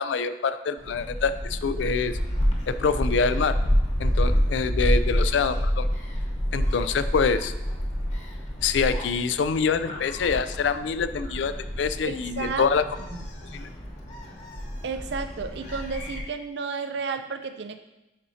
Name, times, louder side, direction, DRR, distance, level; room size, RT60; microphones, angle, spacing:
voice 1, 0.0-2.2 2.7-3.6 4.0-5.9 6.5-7.5 8.6-12.9 13.5-13.7, left 5 dB, 85° left, 12 dB, 0.4 m, -25 dB
Gull seagull, 0.8-16.2, equal, 40° left, 1.0 m, -28 dB
voice 2, 12.1-12.7 13.0-13.1 14.8-17.8, right 5 dB, 75° right, 9 dB, 0.5 m, -32 dB
10.0 x 4.2 x 2.8 m, 0.97 s
head